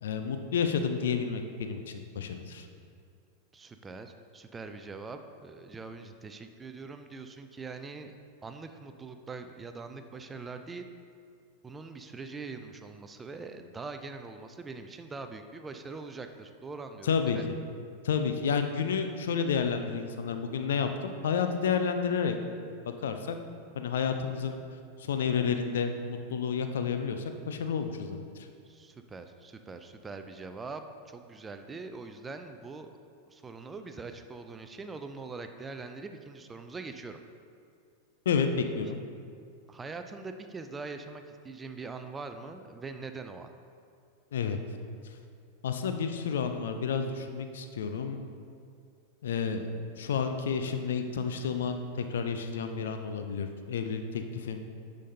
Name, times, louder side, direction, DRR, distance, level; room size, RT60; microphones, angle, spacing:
voice 1, 0.0-2.7 17.0-17.5 18.0-22.3 22.9-23.4 23.7-24.6 25.0-28.5 38.3-39.0 44.3-44.6 45.0-45.2 45.6-48.2 49.2-49.7 50.0-54.6, left 6 dB, 60° left, 7 dB, 0.5 m, -30 dB
voice 2, 3.5-8.1 8.4-10.8 11.6-17.5 28.6-32.9 33.3-37.2 39.7-43.5, right 4 dB, 15° right, 7 dB, 0.4 m, -43 dB
9.8 x 5.2 x 2.8 m, 2.3 s
figure-of-eight pair, 90°, 0 cm